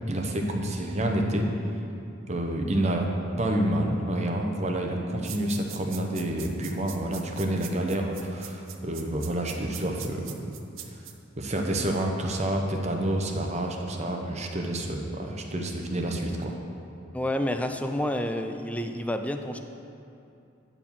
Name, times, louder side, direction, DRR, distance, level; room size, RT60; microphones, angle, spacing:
voice 1, 0.1-1.5 2.3-3.1 3.4-10.5 11.4-16.5, right 1 dB, 35° right, 2 dB, 0.9 m, -28 dB
sound 1, 5.2-11.1, right 10 dB, 75° right, 0.7 m, -42 dB
voice 2, 17.1-19.6, left 1 dB, 5° left, 6 dB, 0.4 m, -29 dB
9.7 x 4.8 x 7.2 m, 2.7 s
head